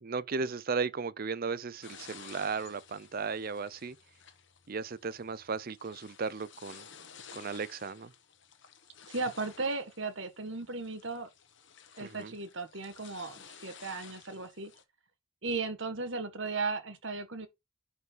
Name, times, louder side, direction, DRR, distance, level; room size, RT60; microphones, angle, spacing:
voice 1, 0.0-4.0 4.7-6.8 7.3-8.1 12.0-12.3, right 4 dB, 45° right, 0.5 m, -35 dB
sound 1, 1.8-14.8, left 7 dB, 55° left, 1.4 m, -54 dB
voice 2, 9.1-11.3 12.0-14.7 15.4-17.5, right 3 dB, 60° right, 1.8 m, -36 dB
11.0 x 5.5 x 3.9 m
head